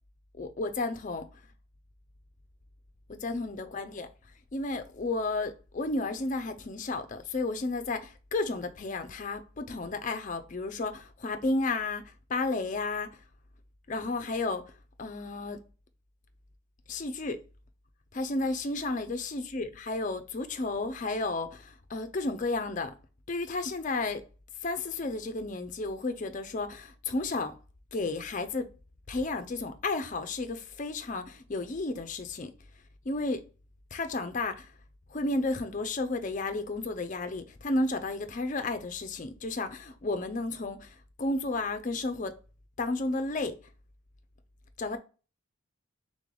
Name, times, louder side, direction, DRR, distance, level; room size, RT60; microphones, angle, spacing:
voice 1, 0.4-1.3 3.1-4.1 4.5-13.1 13.9-14.6 15.0-15.6 16.9-17.4 18.1-22.9 23.3-24.2 24.6-27.5 27.9-28.7 29.1-32.5 33.1-33.4 33.9-34.7 35.1-42.4 42.8-43.6 44.8-45.0, left 2 dB, 35° left, 0.4 m, -32 dB
3.7 x 3.3 x 3.7 m
head